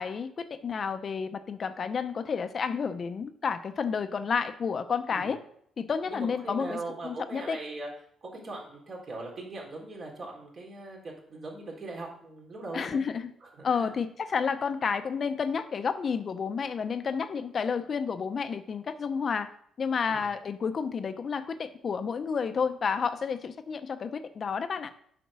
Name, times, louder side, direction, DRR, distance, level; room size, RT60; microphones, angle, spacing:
voice 1, 0.0-5.4 5.8-7.6 12.7-13.3 13.6-19.5 19.8-24.9, left 6 dB, 45° left, 10 dB, 0.7 m, -30 dB
voice 2, 6.1-7.9 8.2-13.0 13.4-13.9 20.1-20.3, right 2 dB, 50° right, -1 dB, 3.2 m, -40 dB
7.2 x 5.1 x 6.2 m, 0.65 s
cardioid pair, 90°, 0 cm